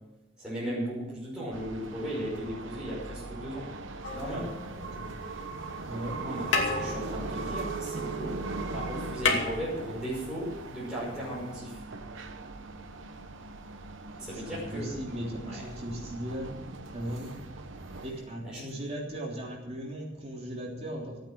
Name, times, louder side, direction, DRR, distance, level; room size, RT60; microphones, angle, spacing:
voice 1, 0.4-3.7 4.1-4.5 6.2-11.7 14.2-14.9 15.4-15.6 17.1-17.3 18.1-18.8, equal, 5° right, -9 dB, 5.8 m, -37 dB
sound 1, 1.5-18.1, right 3 dB, 65° right, 1.0 m, -40 dB
sound 2, 4.0-5.2 6.1-6.2 6.5-8.4 8.6-8.7 9.0-10.3 11.5-11.6, left 4 dB, 65° left, 2.6 m, -32 dB
voice 2, 5.8-6.2 14.1-16.5 16.9-17.4 18.0-21.2, right 1 dB, 35° right, -2 dB, 3.4 m, -37 dB
14.0 x 9.0 x 7.9 m, 1.0 s
head